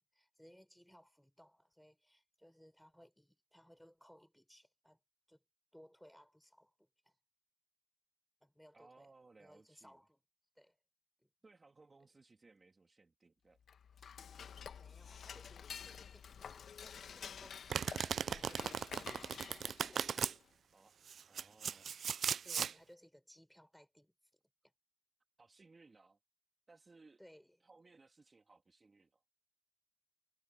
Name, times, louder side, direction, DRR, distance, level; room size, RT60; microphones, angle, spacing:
voice 1, 0.0-5.0 5.3-5.4 5.7-7.1 8.4-9.1 9.4-10.2 10.6-10.8 11.2-11.3 14.7-20.2 22.4-24.1 24.6-24.7 27.2-27.6, equal, ahead, 5.2 m, -63 dB
voice 2, 8.7-10.0 11.4-13.6 20.7-21.0 21.3-21.9 25.4-26.2 26.7-27.2 27.6-29.2, right 3 dB, 25° right, 2.9 m, -63 dB
Dishes pots and pans / Cutlery silverware, 13.6-20.5, left 7 dB, 55° left, 1.4 m, -50 dB
Domestic sounds home sounds, 17.7-20.3 21.1-22.7, right 7 dB, 50° right, 0.3 m, -37 dB
cardioid pair, 90°, 0 cm